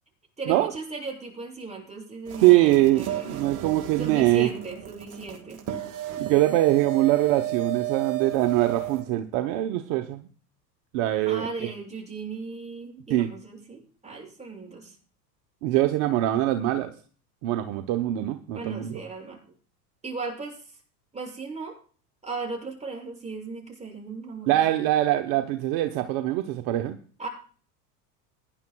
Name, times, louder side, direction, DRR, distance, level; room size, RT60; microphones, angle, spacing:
voice 1, 0.4-3.5 4.0-5.6 11.3-15.0 18.5-19.4 20.0-20.6 21.1-21.8 22.2-24.6 27.2-27.3, right 4 dB, 15° right, -2 dB, 6.9 m, -36 dB
sound 1, 2.3-9.0, right 13 dB, 35° right, 1.9 m, -33 dB
voice 2, 2.4-4.5 6.2-10.2 10.9-11.7 13.1-13.3 15.6-16.9 17.4-19.0 24.5-27.0, right 15 dB, 55° right, 7 dB, 1.0 m, -23 dB
22.0 x 10.5 x 2.3 m, 0.43 s
hypercardioid pair, 100°, 49 cm